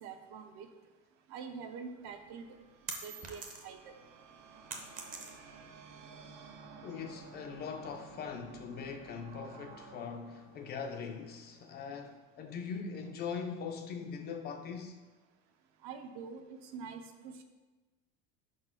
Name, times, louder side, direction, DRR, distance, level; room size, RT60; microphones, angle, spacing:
voice 1, 0.0-0.7 1.3-2.5 3.0-3.9 15.8-17.4, right 6 dB, 55° right, 0.8 m, -45 dB
sound 1, 1.7-12.0, right 5 dB, 85° right, 1.0 m, -54 dB
sound 2, 2.1-3.9 4.2-5.7, right 4 dB, 25° right, 0.7 m, -44 dB
voice 2, 6.8-15.0, left 6 dB, 30° left, 0.4 m, -41 dB
4.8 x 4.3 x 5.8 m
cardioid pair, 155°, 34 cm